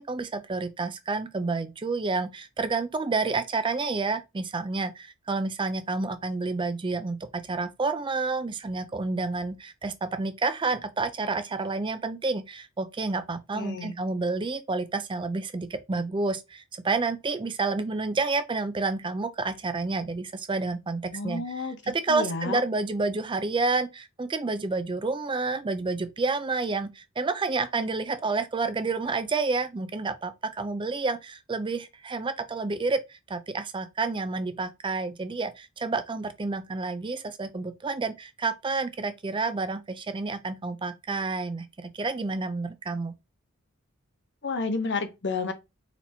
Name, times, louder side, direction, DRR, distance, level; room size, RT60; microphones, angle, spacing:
voice 1, 0.0-43.1, right 3 dB, 20° right, 0.4 m, -29 dB
voice 2, 13.5-14.0 21.1-21.8 22.1-22.6 44.4-45.5, left 3 dB, 55° left, 0.8 m, -30 dB
4.2 x 2.8 x 4.2 m
head